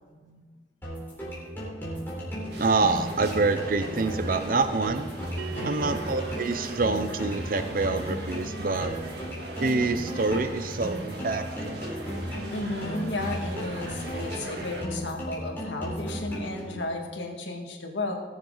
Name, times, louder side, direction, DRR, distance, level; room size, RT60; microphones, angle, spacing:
sound 1, 0.8-16.8, equal, 10° left, 3.8 m, -35 dB
sound 2, 2.5-14.8, right 1 dB, 70° right, 2.1 m, -40 dB
voice 1, 2.6-5.1 5.6-8.9 9.6-11.8, right 3 dB, 50° right, 9 dB, 0.6 m, -26 dB
Bell, 5.4-10.4, right 8 dB, 90° right, 0.7 m, -45 dB
voice 2, 5.5-6.0 12.5-18.1, left 2 dB, 90° left, 2 dB, 2.0 m, -34 dB
20.0 x 7.3 x 4.0 m, 1.4 s
head